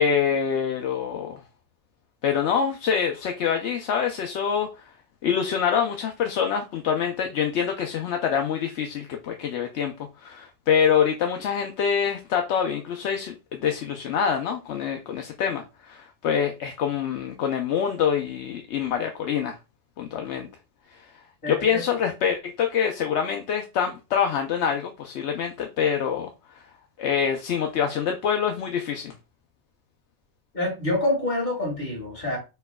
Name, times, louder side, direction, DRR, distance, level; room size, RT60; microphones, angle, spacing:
voice 1, 0.0-1.4 2.2-4.9 5.2-19.6 20.0-20.5 20.9-26.3 26.5-26.6 27.0-29.1, left 7 dB, 80° left, 0.9 m, -25 dB
voice 2, 21.4-21.8 30.5-32.4, left 2 dB, 55° left, 2.2 m, -26 dB
4.9 x 4.4 x 2.2 m
omnidirectional pair, 1.2 m